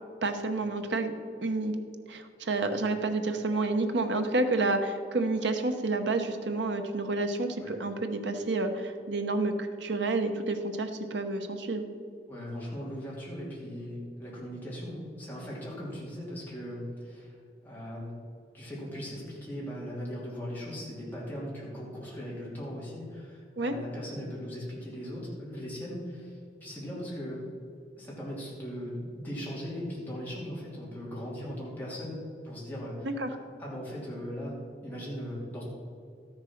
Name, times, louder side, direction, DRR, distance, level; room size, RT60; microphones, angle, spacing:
voice 1, 0.2-1.1 1.4-1.7 2.1-11.9 23.6-23.7 33.0-33.3, right 2 dB, 85° right, 6 dB, 1.0 m, -29 dB
voice 2, 12.3-17.3 17.6-18.1 18.5-27.4 28.0-32.2 32.4-33.1 33.6-34.5 34.8-35.6, equal, 10° left, -6 dB, 2.8 m, -39 dB
13.0 x 6.6 x 5.9 m, 2.4 s
head